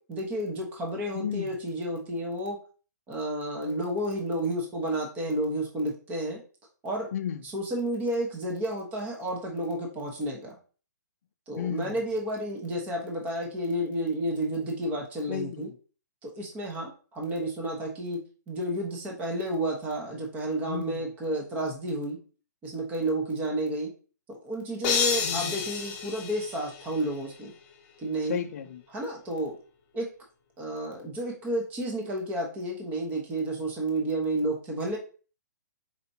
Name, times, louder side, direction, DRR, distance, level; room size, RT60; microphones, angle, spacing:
voice 1, 0.0-2.6 3.1-6.4 6.8-7.1 7.4-10.6 11.5-15.7 16.2-22.2 22.6-23.9 24.3-27.5 28.0-28.4 28.9-29.5 29.9-30.1 30.6-35.0, right 1 dB, 15° right, 1.0 m, -31 dB
voice 2, 1.1-1.5 7.1-7.4 11.6-12.0 15.3-15.8 20.7-21.0 25.2-25.6 28.3-28.8, left 9 dB, 55° left, 0.4 m, -33 dB
sound 1, 24.8-27.2, left 6 dB, 30° left, 0.8 m, -30 dB
4.5 x 4.1 x 2.7 m
hypercardioid pair, 155°, 10 cm